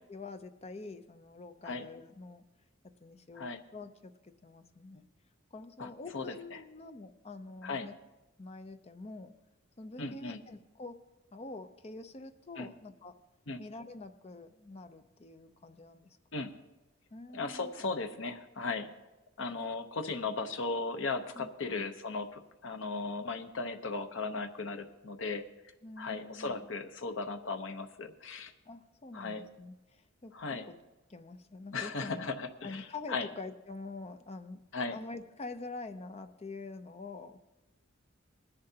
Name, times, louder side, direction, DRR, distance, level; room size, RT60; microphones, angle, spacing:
voice 1, 0.1-2.5 2.8-5.1 5.5-7.9 8.4-9.3 9.8-11.0 11.3-13.2 13.6-16.2 17.1-17.7 21.3-21.9 25.8-26.7 28.6-30.8 31.1-32.2 32.6-34.6 34.9-37.4, left 3 dB, 30° left, 9 dB, 0.6 m, -46 dB
voice 2, 5.8-6.2 7.6-7.9 10.0-10.4 12.6-12.7 13.5-13.6 16.3-16.5 17.3-18.9 19.4-25.4 26.0-28.5 29.1-29.4 30.3-30.7 31.7-33.3 34.7-35.0, left 3 dB, 65° left, 6 dB, 0.8 m, -37 dB
20.0 x 10.5 x 2.8 m, 1.0 s
head